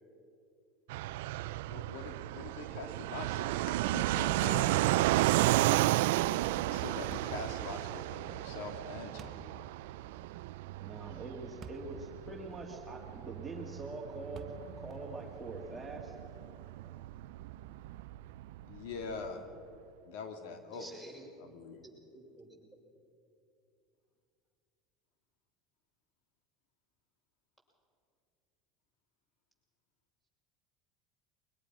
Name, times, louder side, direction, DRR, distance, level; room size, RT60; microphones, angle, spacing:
Fixed-wing aircraft airplane, 0.9-19.3, right 16 dB, 85° right, 0.4 m, -33 dB
voice 1, 1.7-6.1 6.6-9.4 18.6-19.5 20.0-20.9 21.4-21.9, left 4 dB, 80° left, 6 dB, 2.0 m, -44 dB
sound 1, 7.1-7.4 9.2-9.5 11.6-11.9 12.5-12.6 14.3-14.8, right 5 dB, 35° right, 1.2 m, -48 dB
voice 2, 10.8-16.2, right 2 dB, 15° right, -2 dB, 2.4 m, -44 dB
voice 3, 20.7-21.3 21.8-22.6, right 2 dB, 5° left, -1 dB, 7.1 m, -51 dB
22.5 x 20.5 x 6.1 m, 2.5 s
supercardioid pair, 115°, 0 cm